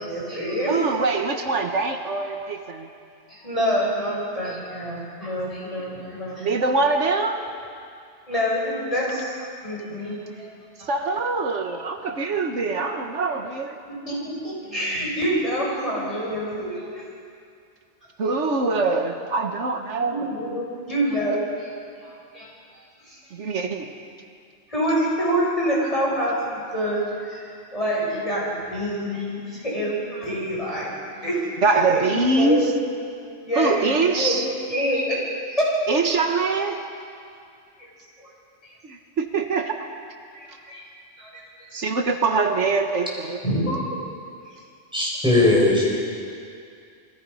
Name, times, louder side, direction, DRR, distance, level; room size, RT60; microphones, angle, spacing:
voice 1, 0.0-0.7 1.1-1.2 3.3-6.5 8.3-9.3 9.6-10.5 10.8-10.9 14.0-17.0 20.0-21.7 22.0-22.5 23.0-23.2 24.7-31.4 31.8-32.8 33.4-34.4 34.7-35.7 37.8-37.9 40.3-40.8 41.2-41.4 41.8-41.9 43.4-44.0, equal, 30° left, -6 dB, 7.7 m, -26 dB
voice 2, 0.7-2.9 6.4-7.4 10.9-13.8 18.2-20.3 23.3-23.9 31.6-32.7 33.5-34.5 35.9-36.8 38.8-39.9 41.7-43.4, right 3 dB, 80° right, 4 dB, 1.7 m, -23 dB
voice 3, 44.9-46.0, left 2 dB, 5° right, -4 dB, 6.7 m, -18 dB
29.5 x 21.5 x 5.7 m, 2.4 s
omnidirectional pair, 1.2 m